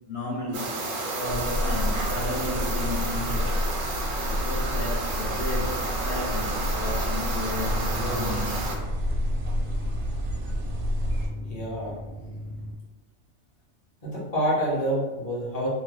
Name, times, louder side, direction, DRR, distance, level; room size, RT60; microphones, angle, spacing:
voice 1, 0.1-3.7 4.3-8.7, left 2 dB, 60° left, -5 dB, 0.8 m, -33 dB
sound 1, 0.5-8.8, right 2 dB, 55° right, 0.6 m, -31 dB
sound 2, 1.3-11.3, equal, 85° right, 1.0 m, -29 dB
sound 3, 7.4-12.7, equal, 85° left, 1.2 m, -38 dB
voice 2, 11.5-11.9 14.0-15.7, equal, 35° left, -6 dB, 0.9 m, -27 dB
2.9 x 2.2 x 3.1 m, 1.2 s
omnidirectional pair, 1.3 m